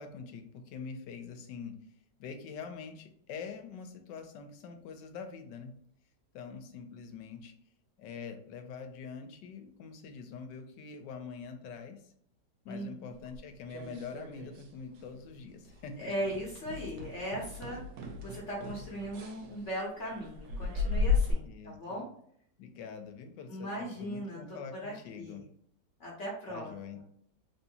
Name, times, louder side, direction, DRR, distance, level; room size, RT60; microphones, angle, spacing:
voice 1, 0.0-1.7 2.2-5.7 6.3-7.5 8.0-12.1 12.6-16.3 21.4-22.0 22.6-25.4 26.5-27.0, left 5 dB, 90° left, 6 dB, 1.3 m, -44 dB
voice 2, 12.7-13.1 16.0-22.1 23.5-25.4 26.0-27.0, equal, 50° left, -4 dB, 1.0 m, -39 dB
sound 1, 13.3-14.7 15.0-15.3 15.7-15.8 16.3-21.3, left 4 dB, 80° right, 1.2 m, -35 dB
3.6 x 2.6 x 2.8 m, 0.65 s
omnidirectional pair, 1.9 m